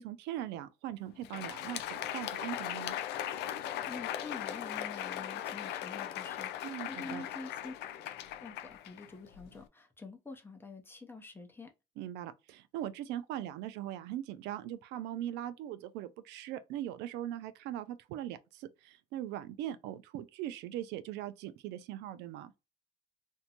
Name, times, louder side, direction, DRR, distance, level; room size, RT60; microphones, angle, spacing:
voice 1, 0.0-3.0 6.6-7.2 12.0-22.5, right 12 dB, 90° right, 0.4 m, -40 dB
Crowd, 1.1-9.6, left 11 dB, 85° left, 0.4 m, -39 dB
voice 2, 3.9-7.7 8.4-11.7, left 3 dB, 15° left, 0.7 m, -47 dB
2.6 x 2.2 x 2.8 m
cardioid pair, 110°, 17 cm